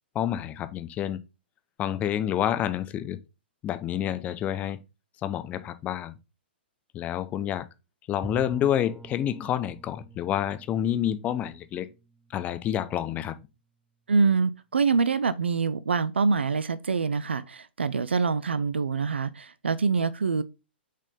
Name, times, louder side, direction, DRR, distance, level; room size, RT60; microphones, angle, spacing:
voice 1, 0.1-1.2 1.8-3.2 3.6-4.8 5.2-6.1 6.9-7.7 8.1-11.9 12.3-13.4, left 11 dB, 25° left, 0.7 m, -28 dB
Bowed string instrument, 8.2-13.0, right 3 dB, 5° right, 0.4 m, -46 dB
voice 2, 14.1-20.4, right 4 dB, 80° right, 0.5 m, -25 dB
6.2 x 4.2 x 3.7 m
figure-of-eight pair, 120°, 6 cm